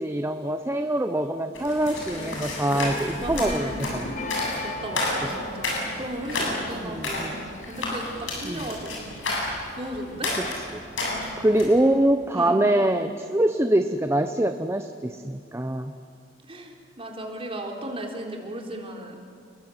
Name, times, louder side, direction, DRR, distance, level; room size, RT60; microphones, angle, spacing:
voice 1, 0.0-4.1 6.8-7.4 8.4-8.8 10.7-10.8 11.4-15.9, right 1 dB, 15° right, 8 dB, 0.8 m, -24 dB
sound 1, 1.5-11.8, left 2 dB, 75° left, 7.9 m, -31 dB
sound 2, 2.2-11.4 11.7-11.8, left 2 dB, 40° left, 1.6 m, -41 dB
voice 2, 3.2-3.9 4.6-9.2 9.8-10.4 11.0-11.3 12.3-12.7 16.5-19.2, right 1 dB, 30° right, 1 dB, 3.8 m, -36 dB
29.5 x 21.5 x 8.3 m, 2.3 s
head